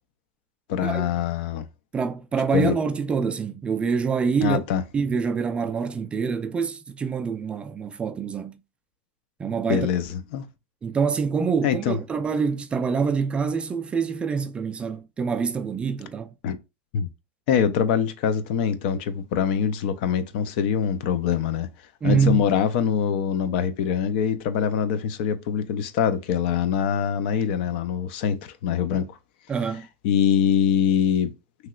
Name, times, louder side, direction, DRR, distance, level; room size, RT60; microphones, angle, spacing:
voice 1, 0.7-1.7 2.5-2.7 4.4-4.8 9.7-10.5 11.6-12.0 16.4-16.6 16.9-17.1 17.5-21.7 22.0-29.1 30.0-31.3, left 8 dB, 60° left, 0.4 m, -24 dB
voice 2, 1.9-4.6 4.9-8.5 9.4-9.9 10.8-16.3 22.0-22.4 29.5-29.9, right 5 dB, 15° right, 0.3 m, -25 dB
3.0 x 2.9 x 2.3 m
supercardioid pair, 130°, 6 cm